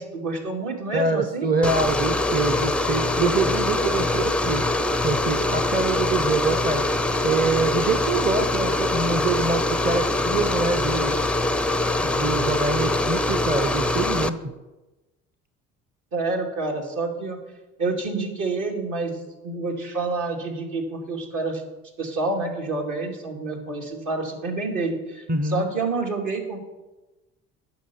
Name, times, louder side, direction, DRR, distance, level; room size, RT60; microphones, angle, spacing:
voice 1, 0.0-1.5 16.1-17.4 17.8-19.2 19.4-21.6 22.0-26.6, right 3 dB, 50° right, 1 dB, 2.6 m, -28 dB
voice 2, 0.9-4.6 5.0-6.9 7.2-11.2 12.0-14.5 25.3-25.7, right 3 dB, 25° right, 7 dB, 1.0 m, -25 dB
sound 1, 1.6-14.3, left 2 dB, 5° left, 0.5 m, -23 dB
9.2 x 6.5 x 7.0 m, 1.1 s
hypercardioid pair, 60°, 39 cm